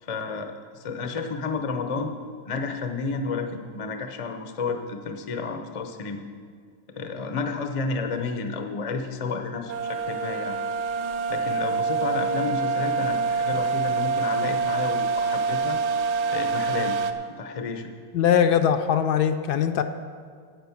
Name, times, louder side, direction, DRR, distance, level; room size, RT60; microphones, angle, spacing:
voice 1, 0.0-2.2 2.5-6.2 6.9-10.6 11.3-15.8 16.3-17.0 17.4-17.9, left 4 dB, 40° left, 5 dB, 0.5 m, -31 dB
sound 1, 9.7-17.1, right 4 dB, 70° right, 1.2 m, -26 dB
voice 2, 18.1-19.8, left 8 dB, 70° left, 8 dB, 1.1 m, -21 dB
10.5 x 8.4 x 7.1 m, 2.1 s
omnidirectional pair, 1.9 m